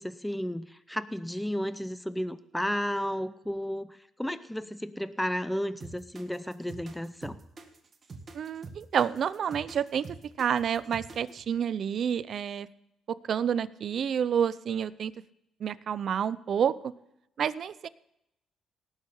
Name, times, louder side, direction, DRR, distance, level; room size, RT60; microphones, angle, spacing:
voice 1, 0.0-7.4, equal, 5° left, 13 dB, 0.6 m, -33 dB
sound 1, 5.8-11.4, right 3 dB, 40° right, 1.9 m, -45 dB
voice 2, 8.3-10.0 10.4-12.7 13.1-15.1 15.6-16.9 17.4-17.9, right 8 dB, 60° right, 17 dB, 0.5 m, -29 dB
18.5 x 6.5 x 5.5 m, 0.84 s
cardioid pair, 90°, 0 cm